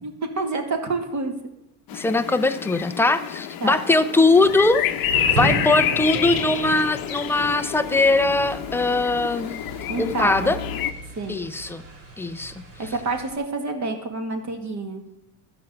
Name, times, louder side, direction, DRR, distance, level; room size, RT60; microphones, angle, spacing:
voice 1, 0.0-1.3 3.6-3.8 9.9-10.5 11.2-11.4 12.8-15.0, right 3 dB, 35° right, 5 dB, 2.0 m, -28 dB
sound 1, 1.9-10.9, left 11 dB, 50° left, 0.8 m, -28 dB
voice 2, 1.9-4.9 5.3-9.6 10.0-10.6 11.3-11.8 12.2-12.5, left 2 dB, 5° left, 9 dB, 0.3 m, -21 dB
Thunder / Rain, 4.4-13.4, right 2 dB, 70° right, 5.3 m, -34 dB
13.5 x 6.0 x 7.8 m, 0.85 s
cardioid pair, 145°, 47 cm